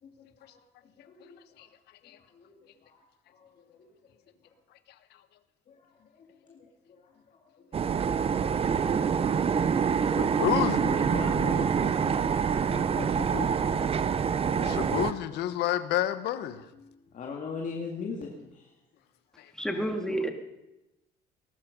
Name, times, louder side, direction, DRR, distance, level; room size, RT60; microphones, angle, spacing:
voice 1, 0.0-1.7 2.0-3.9 5.7-8.3 10.5-14.3 14.6-15.0 15.3-15.5 16.7-18.7 19.3-19.4, left 5 dB, 50° left, 0 dB, 2.2 m, -42 dB
sound 1, 7.7-15.1, right 7 dB, 35° right, 0.7 m, -26 dB
voice 2, 10.2-10.9 14.5-16.6 19.4-19.5, left 12 dB, 80° left, 12 dB, 1.2 m, -29 dB
voice 3, 19.6-20.3, right 1 dB, 5° left, 4 dB, 2.2 m, -29 dB
19.0 x 12.0 x 5.3 m, 0.94 s
cardioid pair, 110°, 17 cm